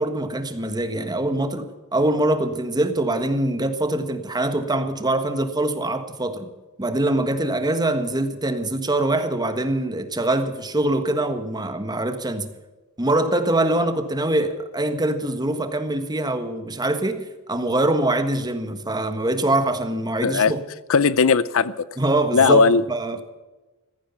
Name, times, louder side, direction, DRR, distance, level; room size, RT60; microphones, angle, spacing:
voice 1, 0.0-6.5 6.8-12.5 13.0-20.6 22.0-22.6 22.9-23.2, right 1 dB, 20° right, 8 dB, 1.5 m, -23 dB
voice 2, 20.2-20.5 20.9-21.8 22.3-22.8, left 5 dB, 65° left, 17 dB, 0.6 m, -17 dB
15.5 x 14.5 x 5.7 m, 1.2 s
head